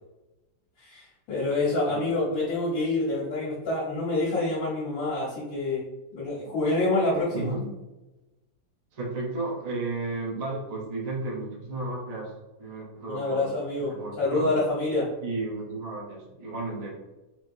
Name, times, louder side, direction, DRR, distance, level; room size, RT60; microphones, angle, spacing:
voice 1, 0.8-5.8 6.1-7.5 13.1-15.1, left 2 dB, 80° left, -7 dB, 1.6 m, -27 dB
voice 2, 7.3-7.7 8.9-12.3 12.6-13.5 13.9-14.5 15.2-17.0, right 2 dB, 55° right, -2 dB, 0.4 m, -33 dB
4.3 x 3.0 x 2.6 m, 1.1 s
omnidirectional pair, 2.0 m